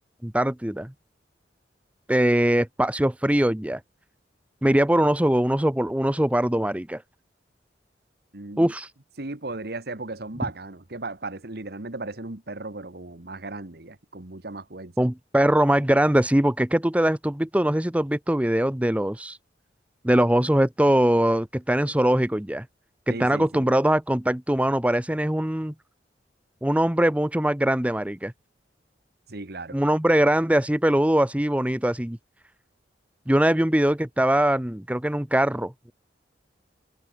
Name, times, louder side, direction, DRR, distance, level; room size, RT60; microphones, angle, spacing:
voice 1, 0.2-0.9 2.1-3.8 4.6-7.0 8.6-8.9 15.0-19.4 20.0-22.6 23.1-25.7 26.6-28.3 29.7-32.2 33.3-35.9, right 1 dB, 10° right, 0.8 m, -22 dB
voice 2, 8.3-8.7 9.2-15.1 23.1-23.7 29.3-29.8, right 2 dB, 60° right, 1.6 m, -36 dB
head